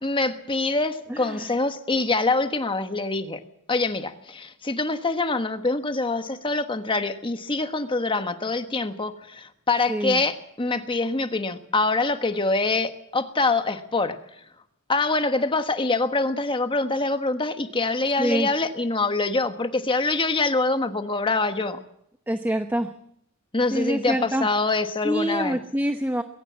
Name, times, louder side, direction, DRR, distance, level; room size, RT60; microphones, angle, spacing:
voice 1, 0.0-3.4 3.7-14.2 14.9-21.8 23.5-25.6, left 3 dB, 25° left, 8 dB, 1.3 m, -25 dB
voice 2, 1.1-1.5 9.9-10.2 18.2-18.5 22.3-22.9 23.7-24.5 25.0-26.2, equal, 10° right, 7 dB, 0.9 m, -26 dB
22.0 x 17.0 x 7.5 m, 0.74 s
head